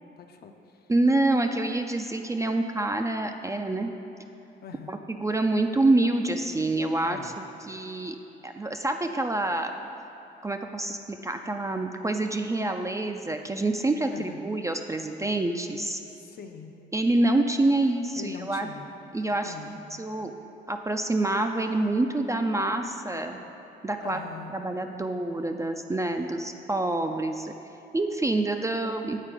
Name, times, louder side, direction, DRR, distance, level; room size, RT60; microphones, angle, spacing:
voice 1, 0.2-0.9 4.6-5.0 7.0-7.3 14.1-14.4 16.2-16.7 18.2-18.8 19.4-19.8 24.0-24.5, left 6 dB, 50° left, 6 dB, 0.5 m, -42 dB
voice 2, 0.9-3.9 4.9-8.2 8.4-9.7 10.4-16.0 16.9-18.7 19.1-20.3 20.7-23.4 23.8-24.2 24.5-27.5 27.9-29.2, right 2 dB, 15° right, 5 dB, 0.3 m, -27 dB
7.5 x 4.4 x 4.8 m, 3.0 s
cardioid pair, 90°, 20 cm